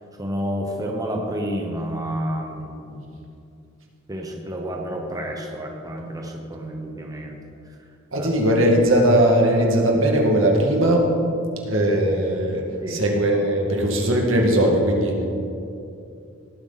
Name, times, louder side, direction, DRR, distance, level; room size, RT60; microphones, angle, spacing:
voice 1, 0.2-3.2 4.1-7.4 8.1-8.3 12.8-13.0, equal, 20° right, 1 dB, 0.9 m, -30 dB
voice 2, 8.1-11.1 11.6-15.2, right 1 dB, 70° right, 0 dB, 2.0 m, -19 dB
17.5 x 8.2 x 4.1 m, 2.6 s
head